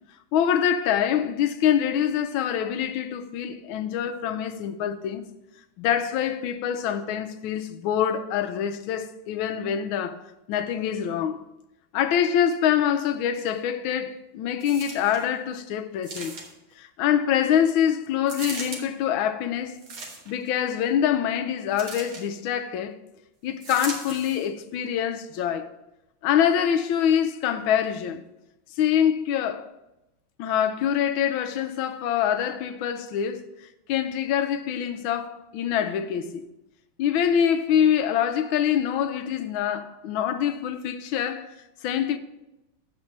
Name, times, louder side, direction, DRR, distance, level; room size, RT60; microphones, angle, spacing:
voice 1, 0.3-5.2 5.8-10.2 10.5-11.4 11.9-16.3 16.8-19.8 20.3-23.0 23.4-25.7 26.2-28.2 28.8-29.7 30.4-33.4 33.9-36.4 37.0-41.5 41.8-42.2, left 9 dB, 85° left, 1.4 m, -25 dB
sound 1, 14.6-15.3 16.0-16.7 18.3-18.8 19.7-20.5 21.8-22.3 23.6-24.5 25.2-25.3, right 3 dB, 85° right, 2.2 m, -38 dB
7.3 x 5.2 x 6.4 m
omnidirectional pair, 2.2 m